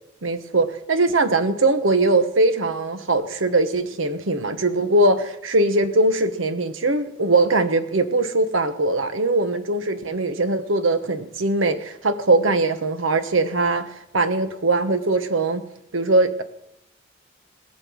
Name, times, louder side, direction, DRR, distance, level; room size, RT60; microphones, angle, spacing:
voice 1, 0.2-15.6 15.9-16.4, right 2 dB, 75° right, 10 dB, 1.2 m, -21 dB
19.5 x 7.6 x 6.3 m, 0.82 s
head